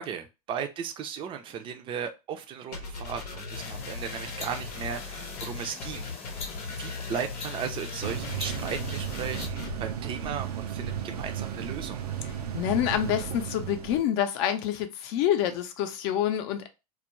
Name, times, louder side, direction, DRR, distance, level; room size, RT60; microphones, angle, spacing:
voice 1, 0.0-6.5 6.8-12.0, right 7 dB, 25° right, 0.4 m, -36 dB
sound 1, 2.7-9.8, left 4 dB, 90° left, 0.7 m, -38 dB
sound 2, 3.5-9.5, left 4 dB, 35° left, 0.9 m, -42 dB
sound 3, 8.0-14.0, right 8 dB, 90° right, 0.5 m, -34 dB
voice 2, 12.5-16.7, left 10 dB, 55° left, 0.5 m, -27 dB
2.3 x 2.1 x 3.0 m
hypercardioid pair, 110°, 19 cm